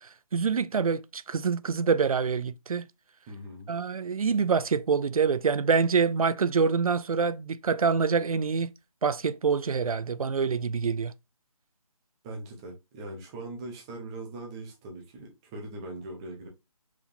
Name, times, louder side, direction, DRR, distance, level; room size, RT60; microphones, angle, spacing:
voice 1, 0.0-2.9 3.7-8.7 9.0-11.1, right 5 dB, 80° right, 0.4 m, -26 dB
voice 2, 3.3-3.7 12.2-16.5, right 2 dB, 10° right, 0.5 m, -41 dB
4.8 x 3.6 x 2.5 m
figure-of-eight pair, 155°, 18 cm